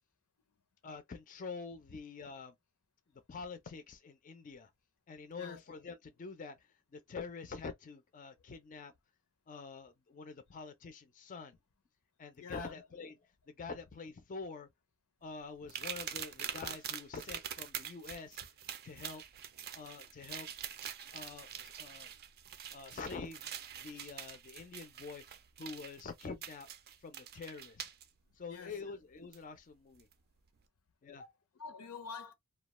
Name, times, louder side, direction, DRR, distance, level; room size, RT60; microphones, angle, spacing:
voice 1, 0.8-2.5 3.3-4.7 5.1-6.6 6.9-8.9 9.5-11.6 12.2-13.2 13.5-14.7 15.2-18.4 18.8-19.2 19.7-20.5 21.1-22.1 22.7-23.5 23.7-25.2 25.6-26.7 27.0-27.9 28.4-30.1 31.0-31.2, left 4 dB, 35° left, 0.4 m, -46 dB
voice 2, 12.4-12.8 28.5-29.0 31.1-32.3, left 5 dB, 85° left, 0.6 m, -47 dB
sound 1, 15.7-28.0 29.3-29.4 30.0-30.1, right 9 dB, 45° right, 0.4 m, -45 dB
2.3 x 2.2 x 2.9 m
head